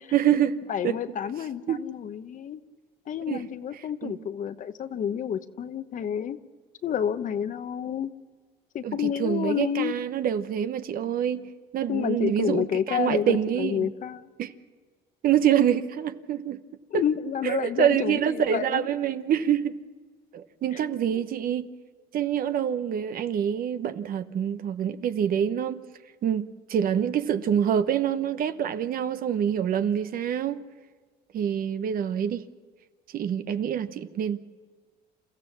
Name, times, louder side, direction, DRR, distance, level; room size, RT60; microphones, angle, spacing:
voice 1, 0.1-1.0 1.7-1.8 3.3-3.4 4.0-4.2 8.8-13.9 14.4-14.5 15.2-16.6 17.4-19.7 20.3-21.7 22.1-25.8 26.2-30.6 31.3-32.4 33.1-34.4, right 9 dB, 60° right, 0.9 m, -26 dB
voice 2, 0.7-2.6 3.1-6.4 6.8-8.1 8.7-9.9 11.9-14.3 16.9-18.9, left 9 dB, 50° left, 1.0 m, -29 dB
28.5 x 15.0 x 7.3 m
cardioid pair, 110°, 17 cm